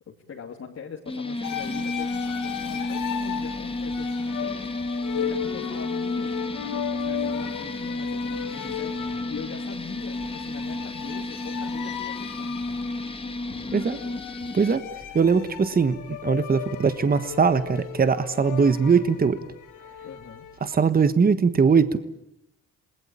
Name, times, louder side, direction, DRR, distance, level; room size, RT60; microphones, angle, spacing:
voice 1, 0.1-12.9 20.0-20.5, left 6 dB, 55° left, -1 dB, 2.9 m, -42 dB
sound 1, 1.1-14.8, left 2 dB, 20° left, 1.9 m, -32 dB
sound 2, 1.4-20.8, left 10 dB, 85° left, 2.3 m, -36 dB
sound 3, 1.5-16.4, right 1 dB, 70° right, 7.7 m, -53 dB
voice 2, 15.1-19.4 20.6-22.0, right 5 dB, 30° right, 12 dB, 1.3 m, -21 dB
28.0 x 20.0 x 8.9 m, 0.83 s
cardioid pair, 90°, 30 cm